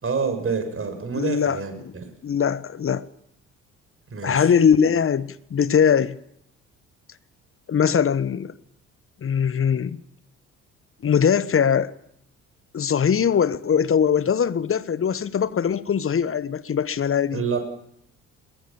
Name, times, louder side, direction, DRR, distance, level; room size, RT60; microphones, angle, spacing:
voice 1, 0.0-2.1 4.1-4.5 17.3-17.6, right 5 dB, 30° right, 7.0 m, -27 dB
voice 2, 1.1-1.9 2.2-3.1 4.2-6.2 7.7-8.5 9.2-10.0 11.0-11.9 12.7-17.4, left 7 dB, 30° left, 1.3 m, -21 dB
23.5 x 22.0 x 7.2 m
figure-of-eight pair, 55°, 40 cm